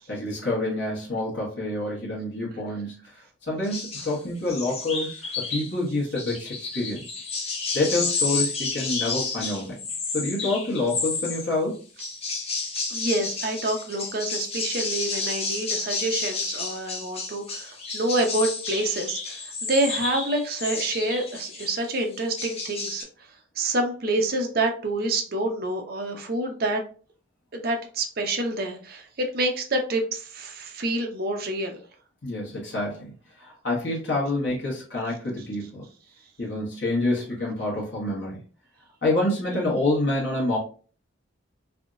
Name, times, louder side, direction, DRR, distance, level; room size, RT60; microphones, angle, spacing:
voice 1, 0.1-3.0 3.5-5.1 5.5-7.0 7.7-9.8 10.1-11.8 32.2-35.8 36.4-38.4 39.0-40.6, left 2 dB, 60° left, -5 dB, 1.2 m, -27 dB
sound 1, 3.6-4.2 4.5-5.7 6.2-11.5 12.0-21.8 22.1-23.0, left 4 dB, 30° left, 0.7 m, -31 dB
voice 2, 12.9-23.0 23.6-26.8 27.5-31.8, right 2 dB, 50° right, 4 dB, 0.6 m, -27 dB
3.4 x 2.6 x 2.5 m, 0.39 s
head